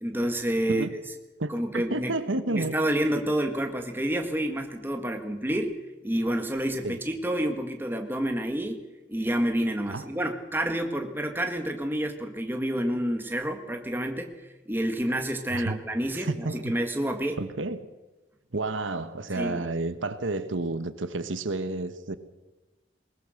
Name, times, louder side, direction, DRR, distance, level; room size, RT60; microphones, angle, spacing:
voice 1, 0.0-0.9 1.5-2.1 2.5-5.7 6.0-14.3 14.6-17.4 19.3-19.6, right 1 dB, 10° right, 1.7 m, -29 dB
voice 2, 1.4-2.8 6.8-7.0 9.9-10.0 15.5-15.8 16.1-16.7 17.4-17.8 18.5-22.1, right 2 dB, 80° right, 1.1 m, -30 dB
20.5 x 20.0 x 6.5 m
head